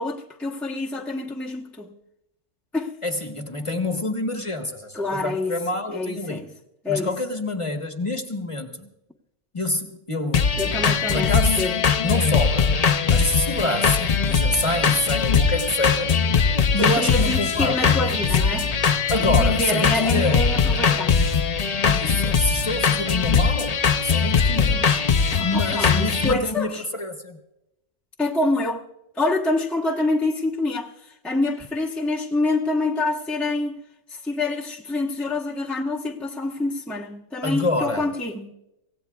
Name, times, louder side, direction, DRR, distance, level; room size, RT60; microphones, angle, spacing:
voice 1, 0.0-2.0 2.7-2.9 4.9-5.5 5.9-6.5 6.8-7.1 10.6-11.8 16.8-18.7 19.2-21.4 25.3-26.8 28.2-28.8 29.2-33.8 34.1-38.5, left 2 dB, ahead, 0.8 m, -26 dB
voice 2, 3.0-6.5 6.9-8.9 9.5-10.6 11.1-11.6 12.0-12.7 13.1-16.1 16.7-18.0 18.4-18.6 19.1-20.4 21.8-27.4 37.4-38.1, left 1 dB, 25° left, 1.2 m, -27 dB
sound 1, 10.3-26.3, left 6 dB, 45° left, 0.5 m, -21 dB
25.0 x 17.0 x 2.3 m
omnidirectional pair, 1.4 m